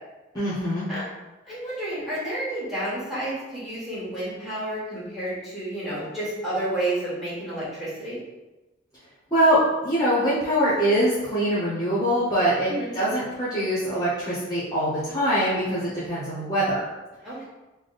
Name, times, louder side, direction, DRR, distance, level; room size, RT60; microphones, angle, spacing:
voice 1, 0.3-0.9 9.3-16.8, equal, 20° left, -10 dB, 0.9 m, -23 dB
voice 2, 1.4-8.2 12.6-13.0 17.2-17.4, right 1 dB, ahead, -9 dB, 1.5 m, -30 dB
3.4 x 2.2 x 3.9 m, 1.1 s
head